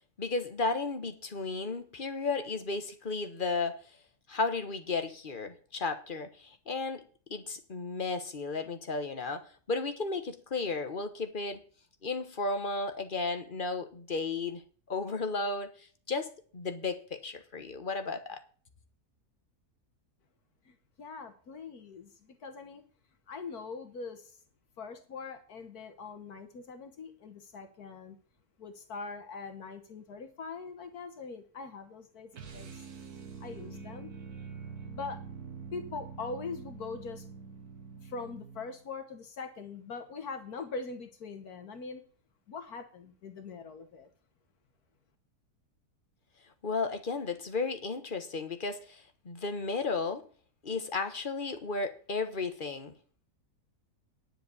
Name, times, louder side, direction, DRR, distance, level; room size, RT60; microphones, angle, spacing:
voice 1, 0.2-3.8 4.3-7.0 7.3-11.6 12.0-14.6 14.9-15.7 16.1-18.4 46.6-50.2 50.6-52.9, left 3 dB, 35° left, 1.3 m, -34 dB
voice 2, 20.7-22.8 23.3-24.4 24.8-28.2 28.6-32.8 33.4-34.1 34.8-35.2 35.7-37.3 38.0-42.0 42.5-44.1, left 4 dB, 75° left, 1.8 m, -42 dB
sound 1, 32.3-38.8, right 5 dB, 80° right, 1.9 m, -45 dB
10.5 x 7.4 x 6.9 m
omnidirectional pair, 1.6 m